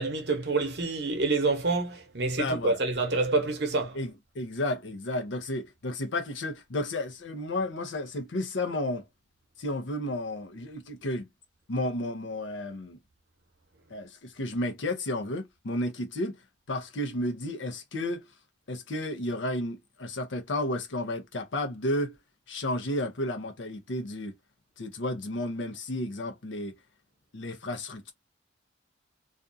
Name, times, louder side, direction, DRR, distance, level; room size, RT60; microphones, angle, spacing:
voice 1, 0.0-4.0, right 3 dB, 60° right, 0.8 m, -27 dB
voice 2, 2.4-2.8 3.9-9.0 9.6-11.3 11.7-13.0 13.9-16.4 16.7-18.3 18.7-22.2 22.5-24.3 24.8-26.7 27.3-28.1, left 1 dB, 80° left, 0.6 m, -32 dB
2.5 x 2.2 x 2.5 m
head